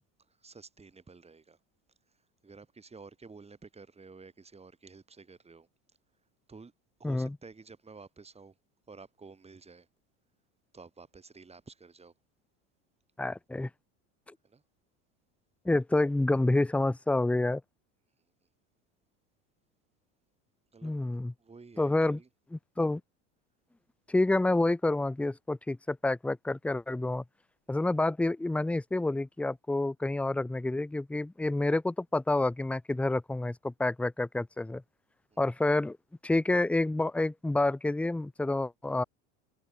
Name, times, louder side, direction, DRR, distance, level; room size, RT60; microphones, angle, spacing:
voice 1, 0.3-1.6 2.4-5.7 6.5-6.7 7.0-8.5 8.9-9.9 10.7-12.1 14.4-14.6 20.7-20.9 21.4-22.3 27.7-27.8 35.3-35.4, right 4 dB, 15° right, 6.4 m, -51 dB
voice 2, 7.0-7.4 13.2-13.7 15.6-17.6 20.8-21.3 21.8-22.2 22.5-23.0 24.1-27.2 27.7-34.8 35.4-36.0 36.2-39.0, left 2 dB, 5° left, 0.6 m, -28 dB
supercardioid pair, 100°, 36 cm